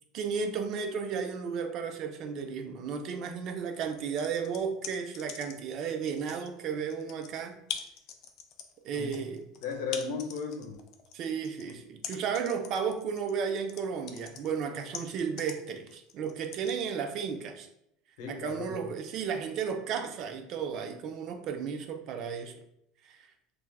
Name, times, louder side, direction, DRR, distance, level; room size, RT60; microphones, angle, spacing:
voice 1, 0.1-7.6 8.8-9.4 11.1-17.7 18.3-22.6 23.0-23.2, right 6 dB, 50° right, 6 dB, 0.4 m, -34 dB
sound 1, 3.8-5.7 6.1-16.8, left 8 dB, 50° left, 0.4 m, -43 dB
voice 2, 8.9-9.2 9.6-10.7 18.2-18.9, left 5 dB, 80° left, 2 dB, 0.7 m, -35 dB
3.2 x 2.4 x 2.3 m, 0.77 s
supercardioid pair, 130°, 0 cm